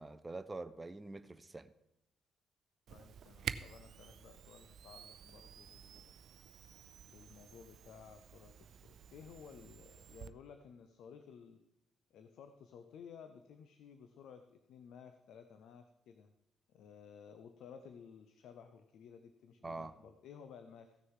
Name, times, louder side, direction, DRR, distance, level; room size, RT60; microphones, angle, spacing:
voice 1, 0.0-1.7 19.6-19.9, right 3 dB, 20° right, 10 dB, 0.6 m, -45 dB
voice 2, 2.9-6.2 7.0-11.6 12.1-16.3 16.7-21.0, left 7 dB, 75° left, 8 dB, 0.7 m, -55 dB
Camera, 2.9-10.3, right 8 dB, 65° right, 0.5 m, -49 dB
15.5 x 6.5 x 4.8 m, 0.88 s
cardioid pair, 90°, 0 cm